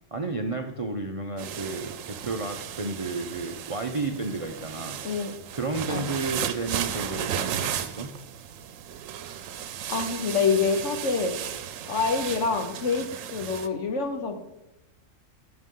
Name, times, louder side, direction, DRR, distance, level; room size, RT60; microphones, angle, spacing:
voice 1, 0.1-5.0 5.5-8.1, right 3 dB, 40° right, 4 dB, 0.5 m, -32 dB
sound 1, 1.4-13.7, right 9 dB, 85° right, 1.0 m, -35 dB
voice 2, 9.9-11.4 11.9-14.4, left 5 dB, 70° left, 7 dB, 1.3 m, -26 dB
15.0 x 6.1 x 3.7 m, 0.97 s
omnidirectional pair, 1.3 m